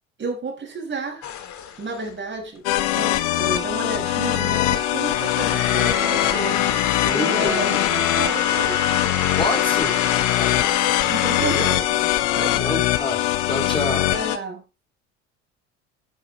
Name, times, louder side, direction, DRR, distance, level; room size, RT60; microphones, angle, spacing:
voice 1, 0.2-1.3 1.8-2.6 2.9-8.9 11.1-12.8 14.1-14.6, right 3 dB, 35° right, 5.6 m, -32 dB
sound 1, 1.2-2.0 3.1-3.2 4.9-11.8, left 9 dB, 55° left, 2.5 m, -25 dB
sound 2, 2.7-14.4, left 15 dB, 75° left, 1.4 m, -22 dB
Trumpet, 4.0-8.4, right 14 dB, 70° right, 1.9 m, -39 dB
voice 2, 7.1-7.6 9.4-10.0 10.4-10.7 11.4-11.7 12.6-13.2 13.5-14.1, left 1 dB, 15° left, 5.3 m, -27 dB
11.5 x 11.0 x 3.1 m
hypercardioid pair, 75°, 35 cm